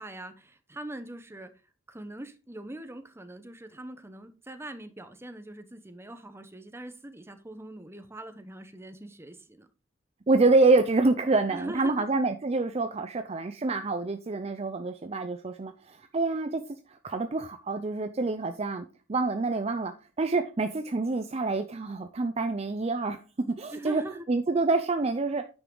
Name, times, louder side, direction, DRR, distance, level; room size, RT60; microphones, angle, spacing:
voice 1, 0.0-1.5 1.9-9.7 11.5-12.1 23.7-24.3, right 1 dB, 10° right, 0.9 m, -42 dB
voice 2, 10.3-16.6 16.9-24.0 24.3-25.4, right 3 dB, 30° right, 0.5 m, -27 dB
9.4 x 5.9 x 3.8 m
head